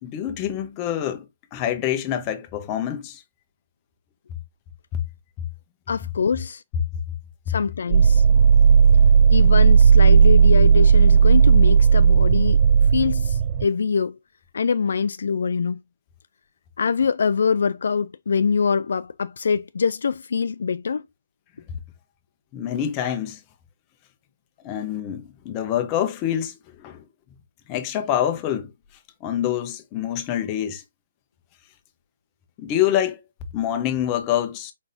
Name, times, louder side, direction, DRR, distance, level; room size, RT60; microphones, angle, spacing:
voice 1, 0.0-1.2 1.5-3.2 4.9-5.0 7.5-7.6 22.5-23.4 24.6-26.5 26.8-27.0 27.7-28.7 29.2-30.8 32.6-33.2 33.5-34.7, left 10 dB, 25° left, 0.9 m, -26 dB
voice 2, 5.9-6.6 7.5-8.2 9.3-12.6 12.9-14.2 14.5-15.8 16.8-21.0, left 5 dB, 70° left, 0.3 m, -24 dB
sound 1, 7.9-13.7, right 6 dB, 30° right, 0.3 m, -14 dB
5.1 x 3.9 x 2.6 m
hypercardioid pair, 155°, 0 cm